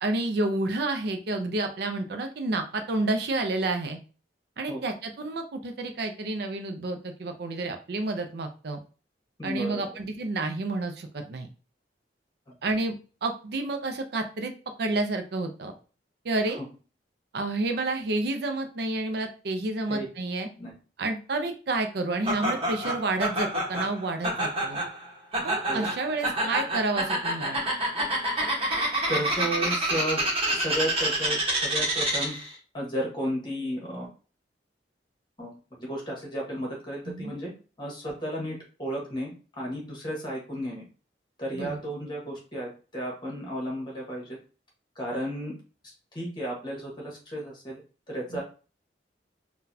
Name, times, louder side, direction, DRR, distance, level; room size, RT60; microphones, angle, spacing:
voice 1, 0.0-4.0 4.6-8.8 9.4-11.5 12.6-12.9 13.2-14.5 14.8-15.7 16.2-16.6 17.3-20.5 21.0-24.8 25.4-27.6 37.1-37.3 41.5-41.8 48.3-48.4, right 2 dB, 65° right, 6 dB, 0.5 m, -30 dB
voice 2, 9.4-9.8 12.5-12.6 19.9-20.1 20.6-20.7 25.7-25.9 29.1-30.2 30.5-32.3 32.7-34.1 35.4-37.5 37.8-40.8 41.4-44.4 44.9-45.5 46.1-47.8 48.1-48.4, equal, 25° left, -2 dB, 1.4 m, -33 dB
Laughter, 22.3-32.5, right 1 dB, 35° right, 1.2 m, -28 dB
3.8 x 2.3 x 2.7 m, 0.36 s
head